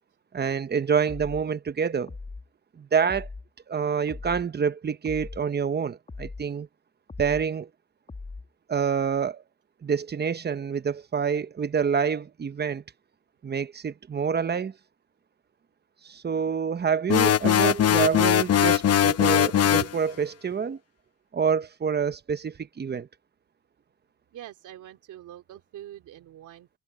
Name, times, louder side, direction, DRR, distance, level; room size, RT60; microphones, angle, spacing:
voice 1, 0.3-2.1 2.8-3.3 3.7-6.7 7.2-7.7 8.7-9.4 9.8-12.8 13.4-14.7 16.0-20.8 21.3-23.1, right 6 dB, 35° right, 1.0 m, -27 dB
sound 1, 1.1-1.5 2.1-2.5 3.1-3.5 4.1-4.5 5.0-5.5 6.1-6.5 7.1-7.5 8.1-8.5, left 3 dB, 25° left, 2.1 m, -40 dB
sound 2, 17.1-20.0, left 9 dB, 55° left, 0.9 m, -20 dB
voice 2, 24.3-26.8, right 12 dB, 80° right, 3.4 m, -45 dB
cardioid pair, 90°, 30 cm